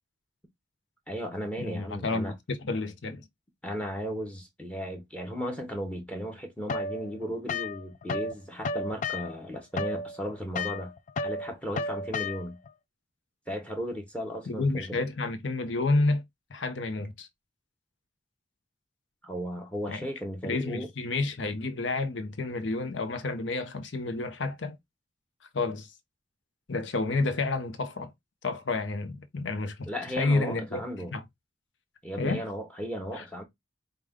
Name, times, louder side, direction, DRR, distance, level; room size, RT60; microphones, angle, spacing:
voice 1, 1.1-2.3 3.6-10.9 11.2-12.6 13.5-15.0 19.2-20.9 29.9-31.1 32.0-33.4, equal, 5° left, 0.8 m, -35 dB
voice 2, 1.6-3.3 14.5-16.2 16.5-17.3 19.9-20.0 20.4-24.8 25.5-25.9 26.7-28.1 28.4-29.9 30.2-30.8 31.1-31.2 32.2-32.4 33.2-33.3, left 3 dB, 70° left, 0.7 m, -30 dB
sound 1, 6.7-8.3 8.6-12.7, left 3 dB, 40° left, 0.3 m, -33 dB
4.9 x 2.3 x 3.5 m
head